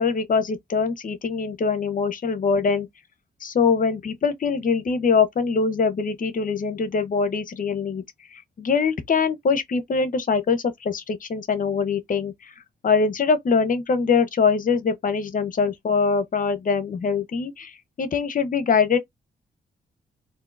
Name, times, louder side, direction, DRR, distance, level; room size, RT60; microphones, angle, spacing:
voice 1, 0.0-2.9 3.4-8.0 8.3-12.3 12.8-17.7 18.0-19.0, left 5 dB, 50° left, 0.9 m, -23 dB
3.6 x 2.6 x 2.5 m
cardioid pair, 65°, 17 cm